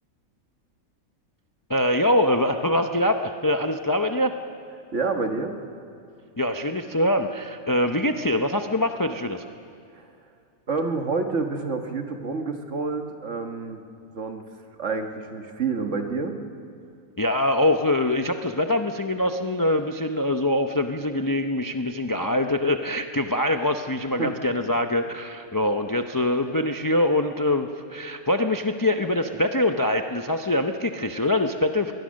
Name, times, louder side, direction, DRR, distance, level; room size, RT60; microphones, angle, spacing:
voice 1, 1.7-4.3 6.4-9.4 17.2-31.9, left 1 dB, 25° left, 6 dB, 0.5 m, -24 dB
voice 2, 4.9-5.5 10.0-10.1 10.7-13.8 14.1-14.4 14.8-16.4 24.2-24.4, right 4 dB, 55° right, 5 dB, 1.7 m, -28 dB
22.5 x 20.0 x 6.4 m, 2.5 s
omnidirectional pair, 1.5 m